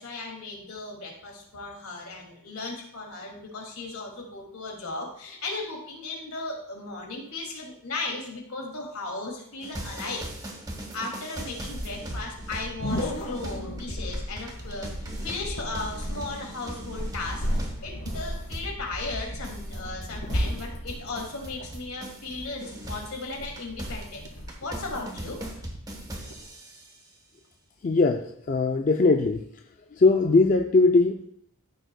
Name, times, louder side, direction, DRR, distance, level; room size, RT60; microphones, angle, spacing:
voice 1, 0.0-10.3 10.9-24.3 24.6-25.4, left 3 dB, 75° left, 0 dB, 2.3 m, -36 dB
sound 1, 9.6-22.3 22.6-27.0, right 1 dB, 15° right, 1.0 m, -40 dB
sound 2, 11.7-26.5, equal, 90° left, 2.7 m, -35 dB
voice 2, 27.8-29.4 29.9-31.2, left 3 dB, 35° left, 4 dB, 0.4 m, -20 dB
13.5 x 6.4 x 2.2 m, 0.71 s
head